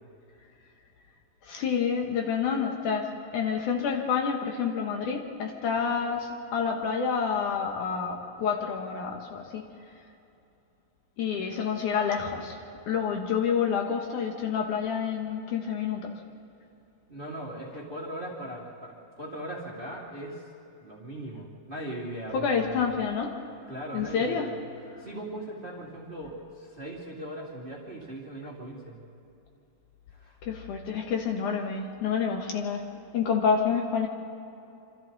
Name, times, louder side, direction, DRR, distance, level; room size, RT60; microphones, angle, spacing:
voice 1, 1.5-9.6 11.2-12.6 12.9-16.1 22.3-23.3 23.9-24.5 30.4-32.8 33.1-34.1, left 6 dB, 65° left, 2 dB, 2.6 m, -28 dB
voice 2, 17.1-20.4 20.8-22.9 23.7-24.6 25.0-29.0 30.1-30.4, right 1 dB, 15° right, -3 dB, 2.3 m, -39 dB
26.5 x 26.0 x 4.1 m, 2.8 s
omnidirectional pair, 4.1 m